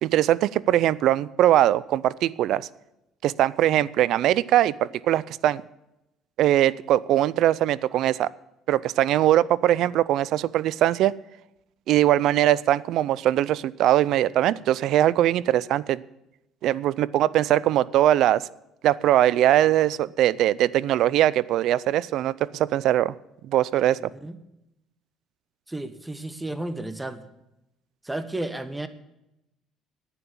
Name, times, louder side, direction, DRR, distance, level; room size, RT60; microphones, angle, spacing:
voice 1, 0.0-2.7 3.2-5.6 6.4-8.3 8.7-11.1 11.9-16.0 16.6-18.5 18.8-23.1 23.5-24.0, right 13 dB, 65° right, 21 dB, 0.4 m, -21 dB
voice 2, 24.0-24.4 25.7-27.3 28.0-28.9, right 2 dB, 10° right, 11 dB, 1.2 m, -33 dB
11.0 x 9.2 x 8.6 m, 0.89 s
supercardioid pair, 95°, 0 cm